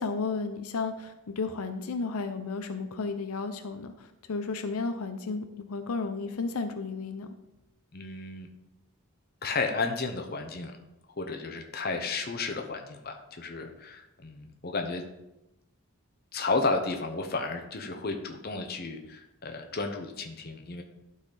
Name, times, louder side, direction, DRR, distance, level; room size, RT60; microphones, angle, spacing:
voice 1, 0.0-7.3, left 4 dB, 85° left, 8 dB, 0.6 m, -33 dB
voice 2, 7.9-8.5 9.4-10.8 11.2-15.0 16.3-20.8, left 3 dB, 45° left, 5 dB, 0.9 m, -32 dB
12.0 x 4.1 x 4.1 m, 0.91 s
head